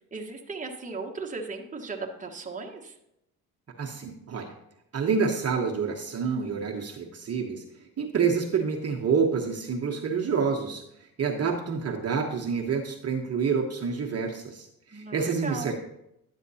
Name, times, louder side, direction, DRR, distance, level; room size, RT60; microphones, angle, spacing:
voice 1, 0.1-2.9 14.9-15.8, right 4 dB, 20° right, 1 dB, 1.2 m, -37 dB
voice 2, 3.8-4.5 4.9-7.6 8.0-15.8, right 5 dB, 40° right, 0 dB, 1.1 m, -28 dB
11.0 x 7.4 x 2.8 m, 0.82 s
supercardioid pair, 75°, 39 cm